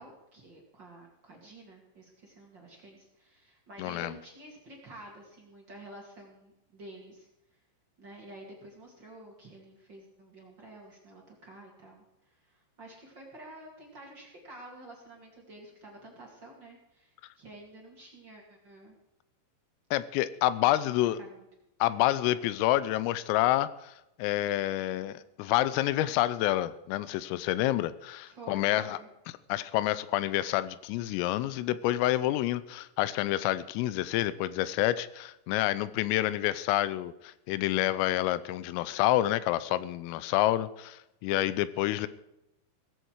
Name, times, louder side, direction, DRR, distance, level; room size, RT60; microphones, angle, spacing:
voice 1, 0.0-7.3 8.0-18.9 20.6-21.4 28.2-29.1, right 1 dB, 40° right, -1 dB, 1.6 m, -50 dB
voice 2, 3.8-4.1 19.9-21.2 21.8-29.0 29.5-42.1, left 15 dB, 85° left, 16 dB, 3.3 m, -28 dB
17.5 x 15.0 x 4.7 m, 0.91 s
omnidirectional pair, 5.9 m